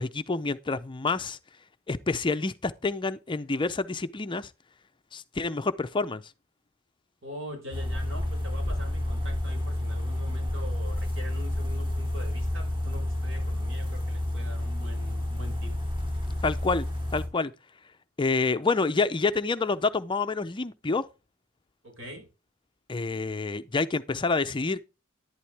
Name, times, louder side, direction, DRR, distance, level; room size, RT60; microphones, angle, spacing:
voice 1, 0.0-1.4 1.9-4.5 5.1-6.2 16.4-16.9 17.1-17.5 18.2-21.0 22.9-24.8, left 3 dB, 25° left, 0.5 m, -28 dB
voice 2, 7.2-15.7 21.8-22.3, left 1 dB, 65° right, 5.6 m, -43 dB
sound 1, 7.7-17.3, left 1 dB, 25° right, 5.6 m, -30 dB
11.5 x 11.0 x 3.4 m
head